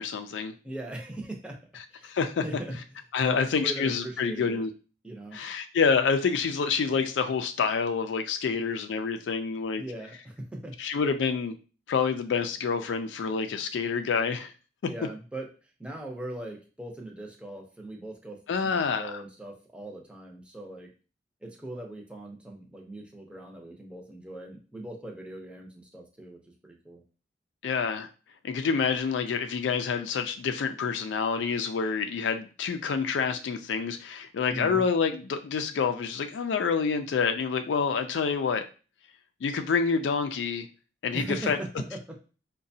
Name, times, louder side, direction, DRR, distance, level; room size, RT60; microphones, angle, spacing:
voice 1, 0.0-0.5 2.0-2.4 3.1-4.7 5.3-9.8 10.8-11.5 11.9-14.5 18.5-19.2 27.6-28.1 28.4-38.6 39.4-40.7 41.0-41.6, left 5 dB, 85° left, 7 dB, 0.4 m, -27 dB
voice 2, 0.6-1.6 1.9-2.2 2.4-2.8 3.2-4.7 5.0-5.4 9.8-10.7 14.8-15.5 15.8-18.4 18.6-20.9 21.4-26.4 26.6-27.0 34.5-34.8 41.1-42.0, right 1 dB, 5° right, 1 dB, 0.6 m, -40 dB
4.8 x 2.2 x 2.7 m, 0.35 s
head